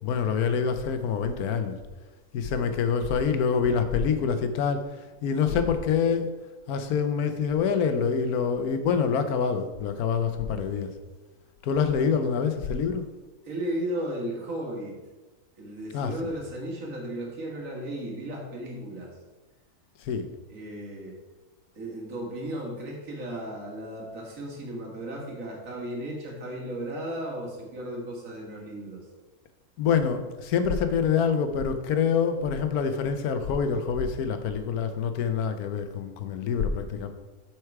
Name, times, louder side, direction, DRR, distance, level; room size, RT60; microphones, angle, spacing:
voice 1, 0.0-1.8 2.3-6.3 6.7-10.9 11.6-13.0 15.9-16.1 20.0-20.3 29.8-37.1, left 6 dB, 80° left, 8 dB, 1.2 m, -26 dB
voice 2, 13.4-15.0 15.6-19.1 20.5-21.2 21.8-29.0, right 1 dB, 60° right, -1 dB, 2.0 m, -35 dB
7.8 x 4.6 x 4.7 m, 1.2 s
omnidirectional pair, 1.6 m